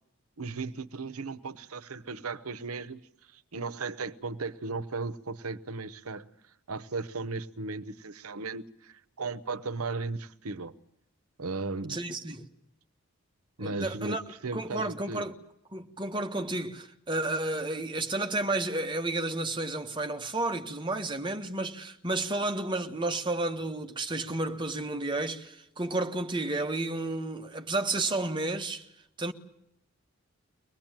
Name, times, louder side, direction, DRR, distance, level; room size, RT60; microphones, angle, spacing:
voice 1, 0.4-3.0 3.3-6.2 6.7-10.7 11.4-12.0 13.6-15.2, right 3 dB, 90° right, 1.0 m, -36 dB
voice 2, 11.9-12.5 13.6-14.2 14.5-15.3 15.7-28.9 29.2-29.3, right 2 dB, 20° right, 1.4 m, -31 dB
24.0 x 19.5 x 9.0 m
head